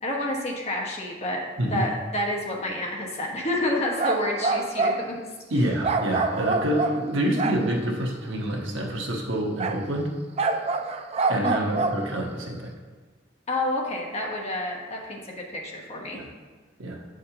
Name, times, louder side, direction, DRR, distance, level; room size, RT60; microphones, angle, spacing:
voice 1, 0.0-1.4 1.7-5.3 11.4-11.8 13.5-16.2, left 1 dB, 35° left, -1 dB, 1.1 m, -29 dB
sound 1, 3.9-5.0 5.8-7.8 9.6-9.8 10.4-12.0, right 3 dB, 35° right, 0.4 m, -26 dB
voice 2, 5.5-10.1 11.3-12.7 16.1-16.3 16.8-17.0, right 1 dB, 75° right, 0 dB, 1.2 m, -27 dB
8.4 x 6.4 x 2.9 m, 1.4 s
head